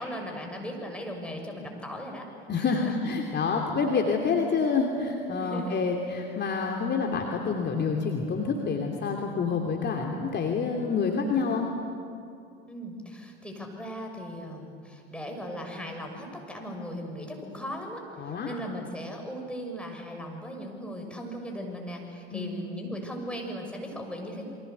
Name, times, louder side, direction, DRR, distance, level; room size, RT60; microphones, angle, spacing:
voice 1, 0.0-2.3 2.5-2.9 5.4-5.8 12.7-24.5, equal, 5° left, 1 dB, 6.6 m, -38 dB
voice 2, 2.5-11.7 18.2-18.5 22.3-22.6, left 5 dB, 30° left, 2 dB, 3.0 m, -28 dB
29.0 x 23.5 x 8.2 m, 2.4 s
figure-of-eight pair, 75°, 32 cm